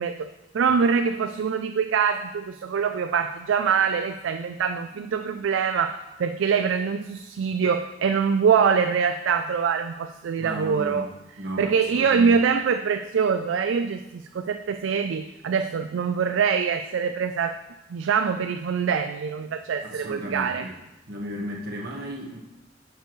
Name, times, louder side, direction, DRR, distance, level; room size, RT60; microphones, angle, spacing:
voice 1, 0.0-11.1 11.6-17.6 17.9-20.7, right 6 dB, 85° right, 8 dB, 0.4 m, -24 dB
voice 2, 10.4-11.1 11.4-12.4 19.8-20.7 21.1-22.4, right 1 dB, 60° right, -2 dB, 1.5 m, -34 dB
9.3 x 6.9 x 3.1 m, 0.99 s
head